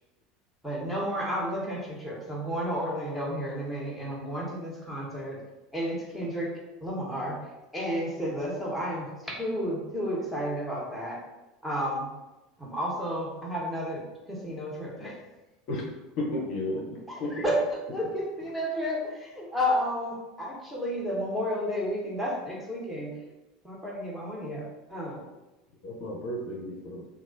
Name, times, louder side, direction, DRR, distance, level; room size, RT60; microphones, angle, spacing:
voice 1, 0.6-5.4 5.7-6.5 6.8-7.4 7.7-11.2 11.6-12.1 12.6-15.1 17.1-23.1 23.6-25.2, equal, ahead, -5 dB, 1.2 m, -32 dB
voice 2, 16.2-17.5 25.8-27.0, left 1 dB, 55° left, -2 dB, 0.7 m, -33 dB
2.9 x 2.5 x 3.8 m, 1.0 s
figure-of-eight pair, 75°, 0 cm